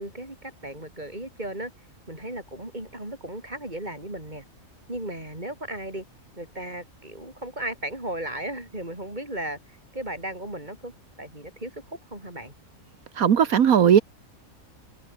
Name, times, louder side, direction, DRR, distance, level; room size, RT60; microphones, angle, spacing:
voice 1, 0.0-1.7 2.1-4.4 4.9-6.0 6.4-10.9 11.2-12.5, right 1 dB, 30° right, 7.5 m, -36 dB
voice 2, 13.1-14.0, right 8 dB, 80° right, 1.6 m, -17 dB
omnidirectional pair, 1.5 m